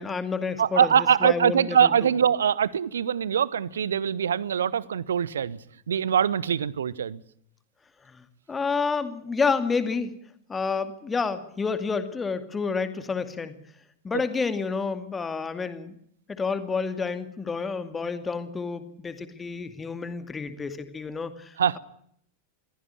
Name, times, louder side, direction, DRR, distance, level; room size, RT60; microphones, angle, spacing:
voice 1, 0.0-2.1 8.0-10.1 10.5-13.6 14.0-15.9 16.3-21.8, left 5 dB, 15° left, 10 dB, 2.4 m, -29 dB
voice 2, 0.6-5.6 5.9-7.2 21.6-21.8, right 8 dB, 65° right, 21 dB, 1.0 m, -23 dB
23.0 x 16.5 x 9.9 m, 0.68 s
figure-of-eight pair, 90°, 0 cm